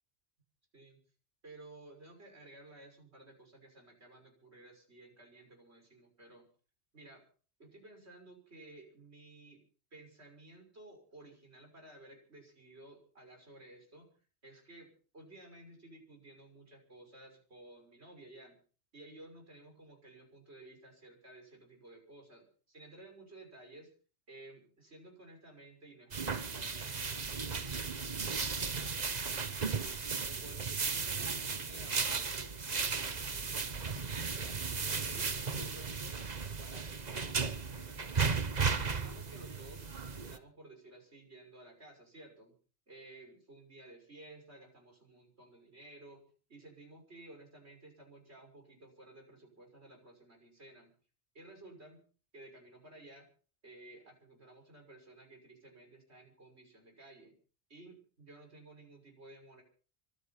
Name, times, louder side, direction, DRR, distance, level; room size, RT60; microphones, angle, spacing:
voice 1, 1.4-6.5 6.9-7.2 7.6-9.6 9.9-14.1 14.4-18.6 18.9-23.9 24.3-30.0 30.2-34.6 35.1-36.2 36.6-38.4 38.8-39.8 40.1-42.5 42.9-46.2 46.5-50.9 51.3-52.0 52.3-53.3 53.6-57.4 57.7-59.6, right 2 dB, 75° right, 3 dB, 6.5 m, -55 dB
sound 1, 26.1-40.4, right 5 dB, 40° right, 1.2 m, -35 dB
24.5 x 10.0 x 5.8 m, 0.42 s
omnidirectional pair, 1.1 m